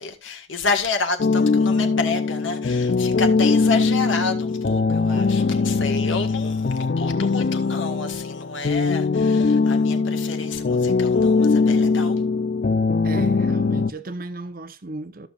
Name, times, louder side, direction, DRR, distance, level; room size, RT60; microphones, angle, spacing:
voice 1, 0.0-12.2, left 4 dB, 70° left, 1.8 m, -29 dB
sound 1, 1.2-13.9, left 4 dB, 45° left, 0.4 m, -21 dB
voice 2, 13.0-15.3, right 2 dB, 45° right, 0.9 m, -34 dB
14.5 x 6.8 x 2.5 m
head